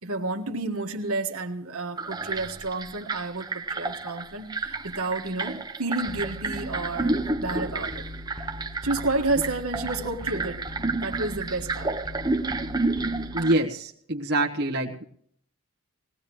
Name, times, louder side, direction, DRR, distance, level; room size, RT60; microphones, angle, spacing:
voice 1, 0.0-8.0 8.8-10.6 11.0-11.9, right 2 dB, 75° right, 3 dB, 1.6 m, -30 dB
sound 1, 2.0-13.5, right 3 dB, 15° right, 0.7 m, -31 dB
sound 2, 6.1-13.4, left 1 dB, ahead, 1.2 m, -40 dB
voice 2, 13.3-15.0, right 1 dB, 45° right, -1 dB, 1.4 m, -25 dB
20.5 x 18.0 x 3.1 m, 0.62 s
head